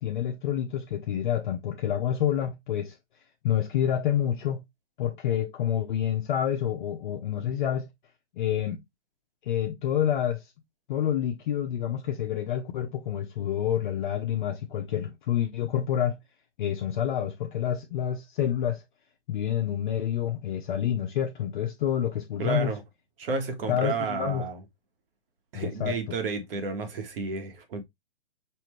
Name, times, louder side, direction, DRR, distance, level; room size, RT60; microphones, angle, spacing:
voice 1, 0.0-3.0 3.4-4.6 5.0-7.9 8.4-8.8 9.5-10.5 10.9-16.2 16.6-18.8 19.3-22.7 23.7-24.4 25.5-25.9, left 10 dB, 45° left, 0.6 m, -28 dB
voice 2, 22.4-22.8 23.2-24.6 25.5-27.8, right 4 dB, 50° right, 1.3 m, -31 dB
5.6 x 2.6 x 3.1 m
hypercardioid pair, 150°, 36 cm